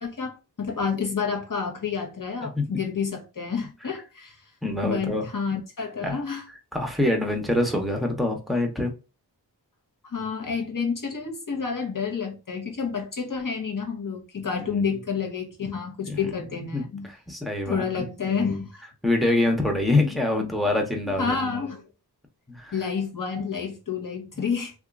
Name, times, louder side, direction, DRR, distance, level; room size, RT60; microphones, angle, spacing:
voice 1, 0.0-4.4 4.8-6.4 10.0-17.1 17.6-18.8 21.2-21.8 22.7-24.7, left 5 dB, 50° left, 0.9 m, -29 dB
voice 2, 4.6-5.3 6.0-6.2 6.7-8.9 14.6-14.9 16.0-16.2 16.7-18.0 19.0-21.4 22.5-22.7, left 2 dB, ahead, 0.7 m, -25 dB
2.8 x 2.3 x 2.3 m
wide cardioid pair, 50°, 41 cm